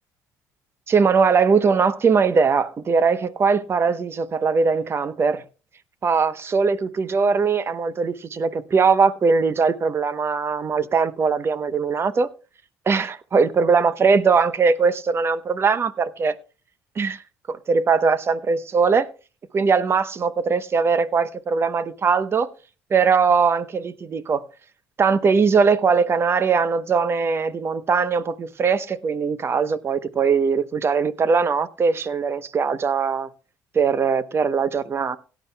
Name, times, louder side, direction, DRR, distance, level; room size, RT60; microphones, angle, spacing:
voice 1, 0.9-5.4 6.0-12.3 12.9-16.4 17.0-17.2 17.5-19.1 19.5-22.5 22.9-24.4 25.0-33.3 33.7-35.2, right 5 dB, 35° right, 0.9 m, -20 dB
17.0 x 10.0 x 2.3 m
supercardioid pair, 85°, 7 cm